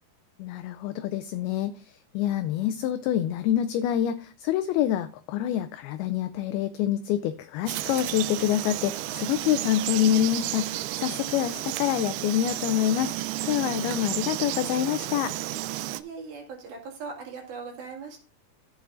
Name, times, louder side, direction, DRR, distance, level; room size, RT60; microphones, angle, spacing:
voice 1, 0.4-15.3, left 11 dB, 85° left, 11 dB, 2.2 m, -26 dB
Frog, 7.7-16.0, right 15 dB, 85° right, 2.3 m, -32 dB
voice 2, 16.0-18.2, right 5 dB, 65° right, 0 dB, 3.7 m, -39 dB
13.0 x 8.1 x 2.5 m, 0.38 s
omnidirectional pair, 4.9 m